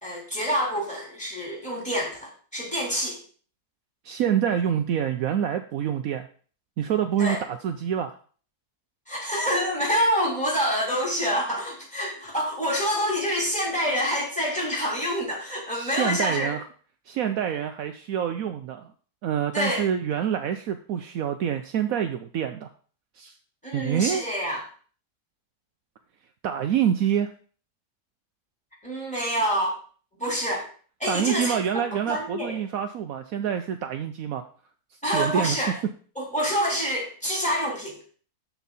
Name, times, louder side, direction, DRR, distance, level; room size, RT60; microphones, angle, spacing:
voice 1, 0.0-3.2 7.2-7.4 9.1-16.6 19.5-19.8 23.6-24.6 28.8-29.8 30.2-30.6 31.0-32.6 35.0-35.8 36.2-38.0, equal, 5° left, -2 dB, 3.7 m, -27 dB
voice 2, 4.0-6.3 6.8-8.2 15.7-16.6 17.1-18.9 19.2-22.7 23.2-23.3 23.7-24.2 26.4-27.3 31.1-34.4 35.1-35.6, right 9 dB, 70° right, 7 dB, 1.0 m, -26 dB
13.0 x 4.6 x 4.1 m, 0.42 s
omnidirectional pair, 1.6 m